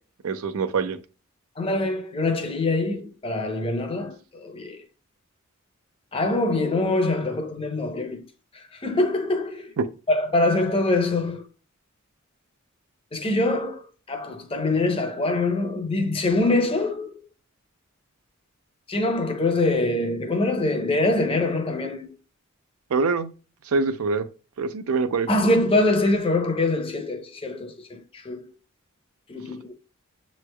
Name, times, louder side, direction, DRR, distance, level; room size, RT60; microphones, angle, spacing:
voice 1, 0.2-1.0 9.8-9.9 22.9-23.3 23.7-24.2 24.6-25.3, right 4 dB, 80° right, 0.5 m, -24 dB
voice 2, 1.6-4.8 6.1-8.2 8.8-9.7 10.1-11.5 13.1-17.3 18.9-22.1 25.3-28.5 29.3-29.7, left 2 dB, 25° left, 0.7 m, -24 dB
6.9 x 3.2 x 2.2 m
head